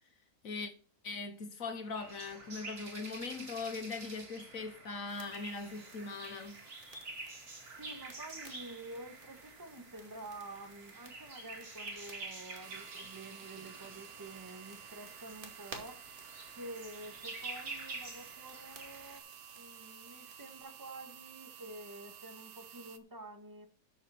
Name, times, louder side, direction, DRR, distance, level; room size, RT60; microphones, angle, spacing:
voice 1, 1.0-6.6, left 4 dB, 55° left, 1.6 m, -40 dB
sound 1, 1.9-19.2, right 3 dB, 60° right, 3.0 m, -48 dB
sound 2, 5.1-20.6, right 2 dB, 30° right, 2.4 m, -57 dB
voice 2, 7.8-16.0 16.6-19.2 19.5-23.7, right 2 dB, 10° right, 1.5 m, -49 dB
sound 3, 12.6-23.0, right 9 dB, 90° right, 1.5 m, -53 dB
13.0 x 6.8 x 4.4 m
omnidirectional pair, 1.8 m